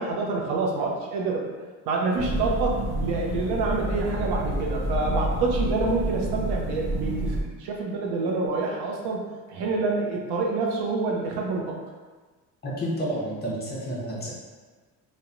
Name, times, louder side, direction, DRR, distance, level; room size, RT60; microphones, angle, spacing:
voice 1, 0.0-1.5 1.9-9.2 9.5-11.8, right 3 dB, 85° right, -1 dB, 0.6 m, -27 dB
sound 1, 2.2-7.4, right 1 dB, 45° right, 0.5 m, -28 dB
voice 2, 12.6-14.3, right 1 dB, 25° left, -5 dB, 0.7 m, -30 dB
2.9 x 2.1 x 2.5 m, 1.4 s
cardioid pair, 120°, 38 cm